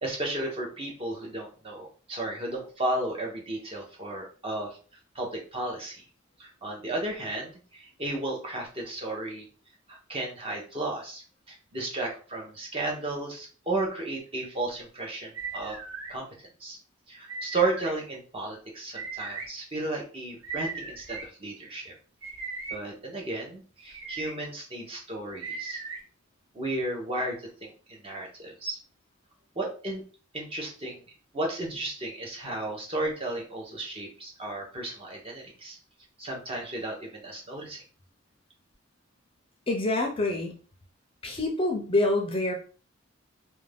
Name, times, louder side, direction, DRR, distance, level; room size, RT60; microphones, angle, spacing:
voice 1, 0.0-4.8 5.1-6.0 6.4-9.5 9.9-15.8 16.1-16.3 16.6-16.8 17.1-21.9 22.7-25.8 26.5-28.8 29.6-30.0 30.3-31.0 31.3-35.8 36.2-37.8, right 2 dB, 25° right, -1 dB, 0.7 m, -34 dB
sound 1, 15.3-16.1 17.3-17.9 18.9-19.5 20.4-21.2 22.2-22.8 23.8-24.3 25.4-26.0, right 4 dB, 85° right, 1.0 m, -37 dB
voice 2, 39.7-40.5 41.2-42.5, left 2 dB, 25° left, 2 dB, 0.5 m, -26 dB
2.5 x 2.2 x 3.3 m, 0.38 s
head